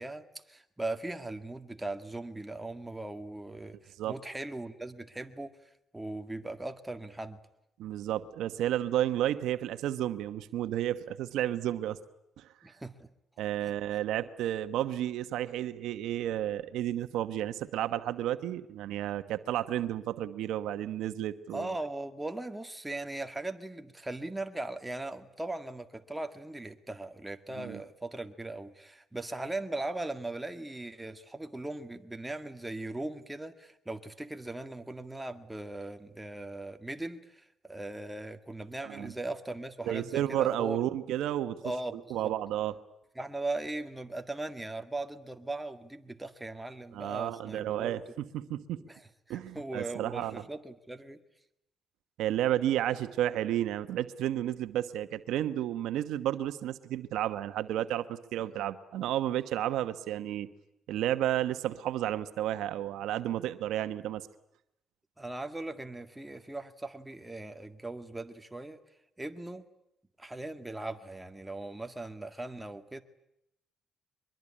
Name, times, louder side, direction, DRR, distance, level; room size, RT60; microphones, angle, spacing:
voice 1, 0.0-5.6 5.9-7.4 12.6-13.1 13.6-13.7 21.5-40.8 41.6-42.3 43.2-48.0 48.8-51.2 65.2-68.8 69.2-69.7 70.2-73.0, right 2 dB, 10° right, 7 dB, 1.9 m, -39 dB
voice 2, 7.8-12.0 12.4-12.5 13.4-21.7 27.6-27.8 38.8-39.1 39.8-41.6 41.9-42.7 46.9-48.0 48.3-48.8 49.3-50.4 52.2-60.5 60.9-64.2, right 12 dB, 85° right, 11 dB, 1.1 m, -32 dB
23.0 x 22.5 x 9.9 m, 0.82 s
cardioid pair, 90°, 0 cm